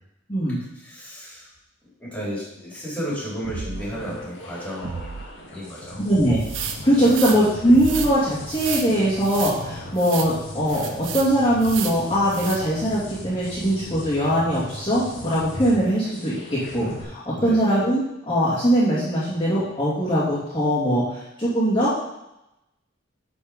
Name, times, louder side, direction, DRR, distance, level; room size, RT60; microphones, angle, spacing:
voice 1, 0.8-1.4 2.0-5.2 5.5-6.0 7.0-7.2 17.4-17.6, equal, 5° left, -6 dB, 3.8 m, -33 dB
sound 1, 3.4-4.0 4.8-5.3 6.2-6.7 7.7-8.4, right 4 dB, 60° right, 0.5 m, -33 dB
sound 2, 3.7-17.0, left 1 dB, 70° left, 2.3 m, -39 dB
voice 2, 6.0-6.4 6.8-22.0, equal, 25° left, -11 dB, 2.7 m, -21 dB
sound 3, 6.4-7.4 7.8-8.1 8.5-8.9 9.2-9.6 10.0-10.3 10.7-11.3 11.6-12.0 12.3-12.6, right 8 dB, 90° right, 1.0 m, -32 dB
11.0 x 5.3 x 5.2 m, 0.88 s
head